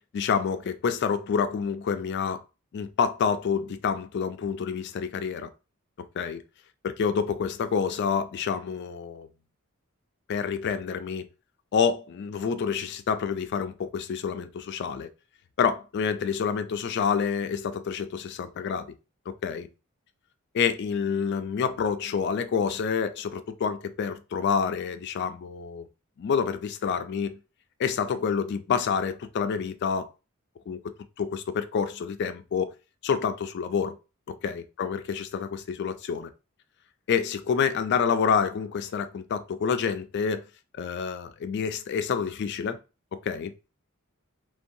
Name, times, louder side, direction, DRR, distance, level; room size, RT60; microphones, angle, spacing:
voice 1, 0.1-2.4 2.7-5.5 6.2-6.4 6.8-9.3 10.3-11.3 11.7-15.1 15.6-18.9 19.3-19.7 20.5-25.9 26.2-27.4 27.8-30.1 30.7-30.8 31.2-32.7 33.0-34.0 34.3-36.3 37.1-40.4 40.8-42.8 43.1-43.5, left 6 dB, 55° left, 0.3 m, -28 dB
2.6 x 2.2 x 2.6 m
head